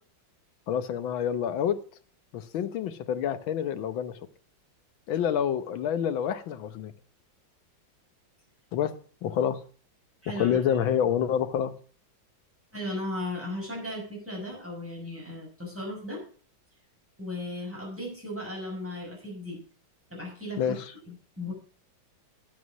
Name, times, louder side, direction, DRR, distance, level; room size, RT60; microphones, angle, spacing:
voice 1, 0.7-1.7 2.3-4.2 5.1-6.9 8.7-8.9 9.2-9.6 10.4-11.7 20.6-20.8, left 9 dB, 90° left, 12 dB, 1.7 m, -27 dB
voice 2, 10.2-10.8 12.7-16.2 17.2-19.6 20.1-21.5, left 1 dB, 5° right, -3 dB, 6.0 m, -36 dB
9.5 x 8.5 x 6.0 m, 0.43 s
omnidirectional pair, 2.1 m